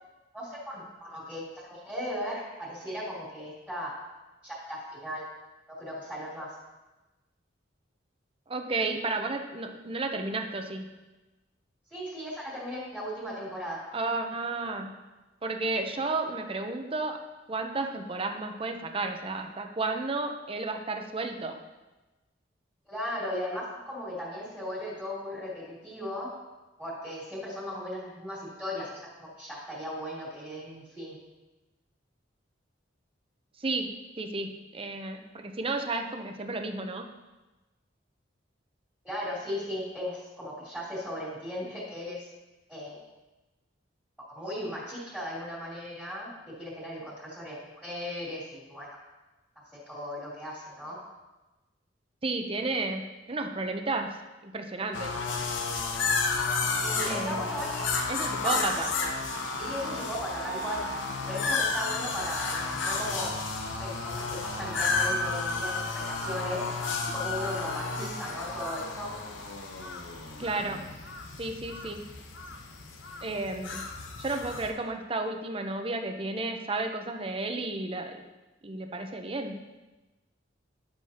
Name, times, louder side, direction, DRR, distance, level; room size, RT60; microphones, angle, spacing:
voice 1, 0.3-4.0 4.4-5.3 5.8-6.6 11.9-13.8 22.9-26.3 26.8-31.2 39.0-42.3 42.7-43.0 44.3-46.3 46.6-48.9 49.9-51.0 56.8-57.9 58.4-58.6 59.6-60.8 61.3-63.3 63.7-66.6 67.1-69.1, equal, 5° left, -9 dB, 2.8 m, -37 dB
voice 2, 8.5-10.8 13.9-14.9 15.4-21.6 33.6-37.1 52.2-55.1 57.1-57.4 58.1-58.9 68.0-68.2 70.4-70.9 71.4-72.1 73.2-73.9 74.2-78.2 78.6-79.6, right 3 dB, 30° right, 5 dB, 0.7 m, -32 dB
sound 1, 54.9-74.7, left 4 dB, 85° left, 0.8 m, -32 dB
11.0 x 7.4 x 2.9 m, 1.1 s
head